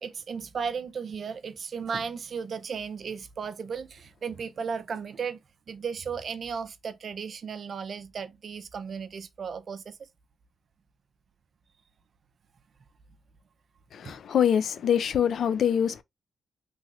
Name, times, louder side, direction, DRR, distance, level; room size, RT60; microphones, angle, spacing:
voice 1, 0.0-5.4 5.7-10.0 14.0-14.2, right 6 dB, 60° right, 0.4 m, -35 dB
voice 2, 13.9-16.0, left 8 dB, 70° left, 0.3 m, -24 dB
3.0 x 2.8 x 2.3 m
supercardioid pair, 50°, 0 cm